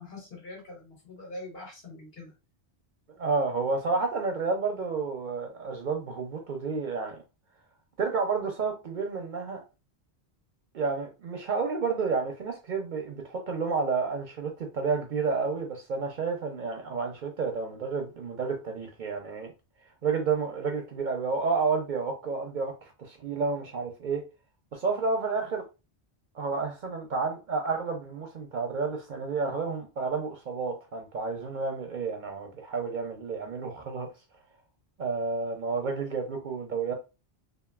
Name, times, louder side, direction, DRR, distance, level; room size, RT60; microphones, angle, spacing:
voice 1, 0.0-2.3, left 2 dB, 65° left, 1.4 m, -43 dB
voice 2, 3.2-7.2 8.0-9.6 10.7-19.5 20.0-24.2 24.7-25.6 26.3-34.1 35.0-36.9, right 4 dB, 55° right, 0.6 m, -30 dB
2.9 x 2.5 x 2.3 m
omnidirectional pair, 1.1 m